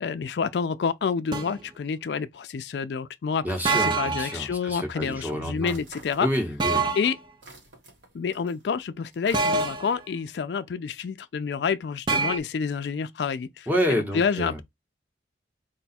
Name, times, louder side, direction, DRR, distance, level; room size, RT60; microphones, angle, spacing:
voice 1, 0.0-6.3 6.9-7.2 8.1-13.7 14.1-14.6, left 6 dB, 70° left, 0.4 m, -28 dB
sound 1, 1.3-1.6 3.7-4.4 6.6-7.1 9.3-10.0 12.1-12.4, right 4 dB, 25° right, 0.4 m, -25 dB
voice 2, 3.4-5.8 6.2-6.9 13.7-14.6, equal, 10° right, 0.9 m, -28 dB
sound 2, 5.6-6.8 7.1-10.1, right 2 dB, 80° right, 1.5 m, -48 dB
4.7 x 2.3 x 4.1 m
head